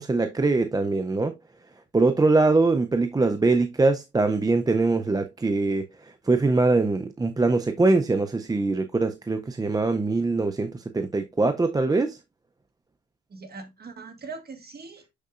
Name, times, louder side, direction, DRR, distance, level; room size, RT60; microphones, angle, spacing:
voice 1, 0.0-1.3 1.9-5.9 6.3-12.2, right 3 dB, 15° right, 0.4 m, -22 dB
voice 2, 13.3-15.1, right 4 dB, 30° right, 1.6 m, -41 dB
6.6 x 6.3 x 2.4 m
cardioid pair, 165°, 30 cm